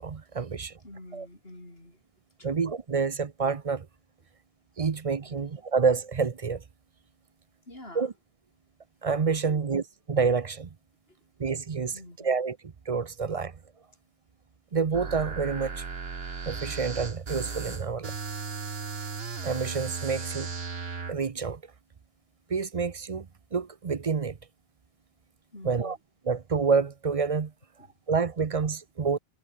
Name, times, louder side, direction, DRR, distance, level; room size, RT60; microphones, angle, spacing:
voice 1, 0.0-0.7 1.1-1.3 2.4-3.9 4.8-6.6 7.9-8.1 9.0-10.7 11.4-13.5 14.7-15.8 16.5-18.1 19.4-20.5 21.1-21.6 22.5-24.4 25.6-26.0 26.2-27.5 28.1-29.2, right 5 dB, 40° right, 0.7 m, -28 dB
voice 2, 0.8-2.0 2.4-2.6 5.3-5.5 7.7-8.1 9.5-9.8 11.1-11.2 11.9-12.4 25.5-26.0, left 1 dB, 70° left, 7.3 m, -47 dB
sound 1, 14.9-21.1, right 4 dB, 70° right, 2.0 m, -36 dB
omnidirectional pair, 1.1 m